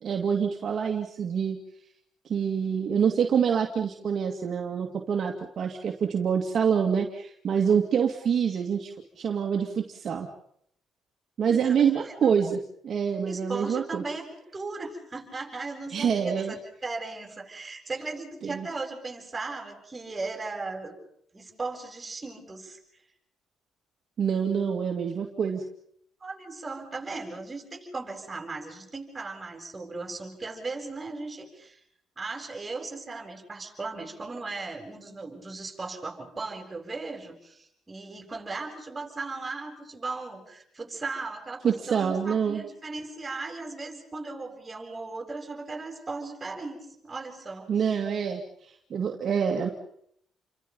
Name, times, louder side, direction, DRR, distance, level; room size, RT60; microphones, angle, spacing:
voice 1, 0.0-1.6 2.3-10.3 11.4-14.0 15.9-16.5 18.4-18.7 24.2-25.6 41.6-42.6 47.7-49.7, right 7 dB, 55° right, 2 dB, 2.4 m, -26 dB
voice 2, 11.4-12.1 13.2-14.2 14.5-21.0 21.3-22.8 26.2-31.8 32.2-47.9, right 3 dB, 25° right, 2 dB, 7.9 m, -37 dB
29.5 x 25.0 x 5.5 m, 0.70 s
cardioid pair, 90°, 0 cm